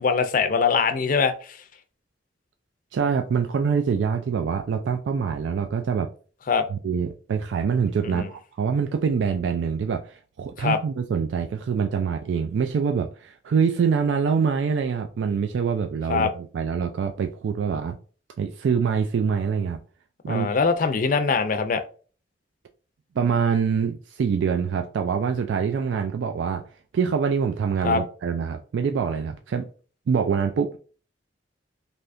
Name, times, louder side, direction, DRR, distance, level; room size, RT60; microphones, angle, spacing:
voice 1, 0.0-1.3 6.5-6.6 8.0-8.3 10.6-10.8 16.1-16.3 20.3-21.8 27.8-28.0, left 5 dB, 50° left, 0.4 m, -22 dB
voice 2, 2.9-6.1 6.7-18.0 18.4-19.8 20.2-20.5 23.2-26.6 26.9-29.7 30.1-30.8, right 6 dB, 85° right, 0.3 m, -25 dB
3.4 x 2.7 x 2.5 m
head